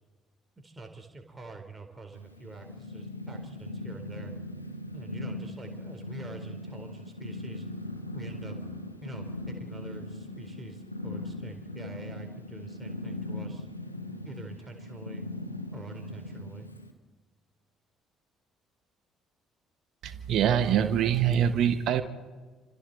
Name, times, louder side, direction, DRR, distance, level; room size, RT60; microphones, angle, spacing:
voice 1, 0.6-4.3 4.9-7.7 8.1-8.6 9.0-13.7 14.2-15.2 15.7-16.7, right 3 dB, 20° right, 4.0 m, -45 dB
Purr, 2.1-16.9, left 2 dB, 90° left, 1.3 m, -39 dB
voice 2, 20.0-22.0, right 9 dB, 55° right, 1.2 m, -24 dB
29.0 x 26.0 x 4.2 m
figure-of-eight pair, 50°, 0 cm